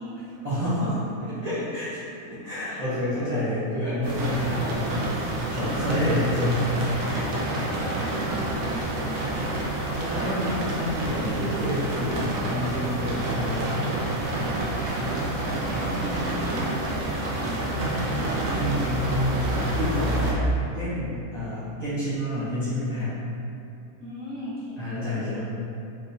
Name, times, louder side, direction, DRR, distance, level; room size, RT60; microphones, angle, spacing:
voice 1, 0.4-4.9 5.5-6.6 7.0-7.3 9.6-13.7 14.4-14.7 15.0-15.3 18.5-20.5 20.7-23.2 24.8-25.4, left 1 dB, 35° right, -14 dB, 0.7 m, -29 dB
sound 1, 4.0-20.3, right 1 dB, 70° right, 1.0 m, -28 dB
voice 2, 4.4-4.8 7.4-9.4 14.6-17.8 24.0-25.4, equal, 20° left, -15 dB, 1.1 m, -40 dB
3.5 x 2.9 x 2.7 m, 2.7 s
omnidirectional pair, 1.6 m